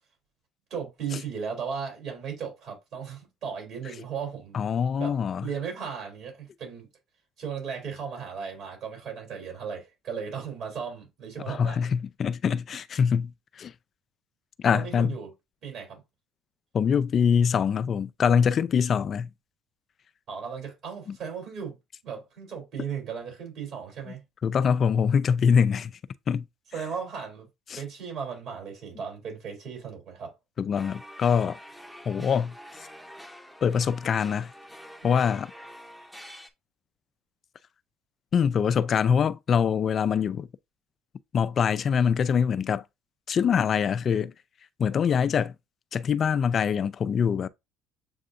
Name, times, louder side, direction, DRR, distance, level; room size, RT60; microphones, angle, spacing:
voice 1, 0.7-4.6 5.0-6.9 7.4-11.9 14.7-15.3 15.6-16.0 20.3-21.8 22.0-24.2 26.7-27.5 27.8-30.3 32.1-32.3 35.0-35.2, right 6 dB, 60° right, 3.2 m, -36 dB
voice 2, 4.5-5.5 11.5-13.7 14.6-15.1 16.7-19.3 24.4-25.9 26.3-26.4 27.7-27.8 30.6-31.6 32.1-32.6 33.6-34.5 35.0-35.5 38.3-40.5 41.3-42.8 43.3-44.3 44.8-45.5 45.9-47.5, left 7 dB, 45° left, 0.3 m, -24 dB
sound 1, 30.7-36.5, equal, ahead, 0.8 m, -46 dB
7.6 x 2.6 x 2.6 m
supercardioid pair, 80°, 0 cm